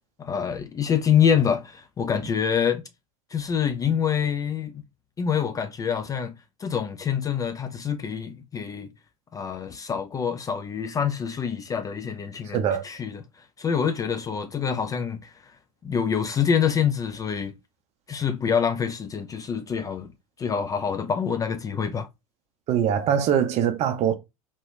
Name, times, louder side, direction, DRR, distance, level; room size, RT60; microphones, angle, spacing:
voice 1, 0.2-2.8 3.3-4.8 5.2-6.3 6.6-8.9 9.3-13.2 13.6-15.3 15.8-17.5 18.1-20.1 20.4-22.1, left 7 dB, 20° left, 0.3 m, -26 dB
voice 2, 12.5-12.8 22.7-24.1, right 9 dB, 35° right, 0.6 m, -22 dB
3.0 x 2.9 x 2.5 m
figure-of-eight pair, 80°, 18 cm